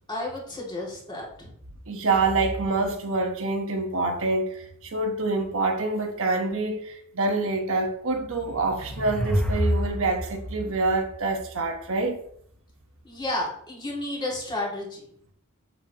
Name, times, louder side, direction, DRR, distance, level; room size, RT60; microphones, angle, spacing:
voice 1, 0.1-1.5 13.0-15.0, left 1 dB, 20° left, 2.5 m, -32 dB
voice 2, 1.9-12.2, right 3 dB, 65° right, 1.2 m, -26 dB
sound 1, 8.4-11.9, equal, 5° left, 0.9 m, -28 dB
8.2 x 6.7 x 3.0 m
head